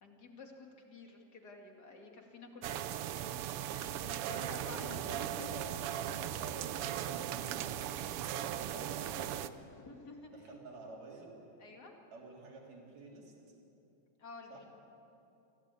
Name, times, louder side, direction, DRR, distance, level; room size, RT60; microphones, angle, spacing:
voice 1, 0.0-3.4 3.7-5.6 9.8-10.3 11.6-11.9 14.2-14.7, left 3 dB, 35° left, 1 dB, 2.6 m, -51 dB
sound 1, 2.6-9.5, right 11 dB, 85° right, 1.2 m, -38 dB
voice 2, 4.3-5.8 6.1-8.0 8.4-9.6 10.3-11.3 12.1-13.5 14.5-14.6, right 2 dB, 65° right, -1 dB, 4.5 m, -51 dB
25.0 x 16.0 x 8.5 m, 2.9 s
omnidirectional pair, 3.4 m